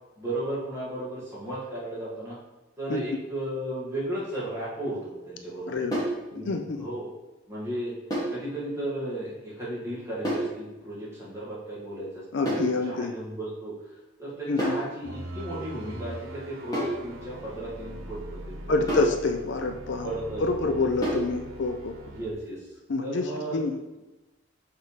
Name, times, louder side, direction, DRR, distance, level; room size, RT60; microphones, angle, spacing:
voice 1, 0.2-2.4 2.8-5.8 6.3-7.0 7.5-7.9 8.3-12.6 12.8-13.7 14.2-19.0 20.0-20.9 22.0-22.7 23.0-23.6, right 1 dB, 15° right, -7 dB, 1.9 m, -35 dB
voice 2, 5.7-6.0 6.3-6.9 12.3-13.1 14.5-14.8 18.7-20.1 20.4-21.9 22.9-23.8, left 3 dB, 60° left, 5 dB, 0.4 m, -27 dB
sound 1, 5.9-6.2 8.1-8.4 10.2-10.5 12.4-12.8 14.6-14.9 16.7-17.0 18.9-19.2 21.0-21.3, right 1 dB, 20° left, 1.7 m, -28 dB
sound 2, 15.0-22.3, right 2 dB, 90° right, 0.9 m, -41 dB
6.4 x 3.4 x 4.9 m, 1.1 s
head